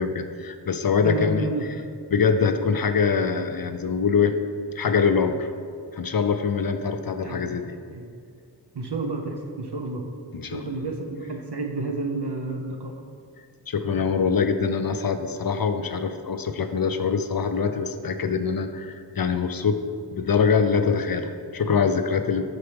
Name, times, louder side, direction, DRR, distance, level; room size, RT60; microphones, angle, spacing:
voice 1, 0.0-1.8 2.1-4.3 4.8-5.5 5.9-7.7 10.3-10.8 13.7-19.8 20.1-22.4, left 5 dB, 50° left, 8 dB, 0.5 m, -24 dB
voice 2, 1.0-1.6 7.2-7.4 7.9-8.1 8.7-10.0 10.5-13.0, right 3 dB, 65° right, 2 dB, 0.9 m, -30 dB
7.8 x 5.9 x 3.4 m, 2.2 s
wide cardioid pair, 55°, 45 cm